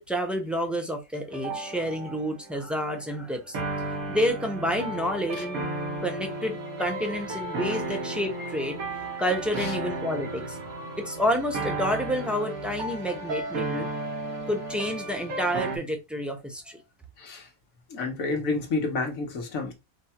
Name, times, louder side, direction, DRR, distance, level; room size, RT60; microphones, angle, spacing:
voice 1, 0.0-3.6 4.1-5.7 6.0-8.8 9.1-13.9 14.5-16.8, equal, ahead, 0.7 m, -29 dB
sound 1, 1.3-15.8, right 2 dB, 90° right, 1.8 m, -34 dB
voice 2, 17.9-19.7, left 3 dB, 75° left, 1.5 m, -29 dB
5.4 x 2.2 x 4.3 m
omnidirectional pair, 1.4 m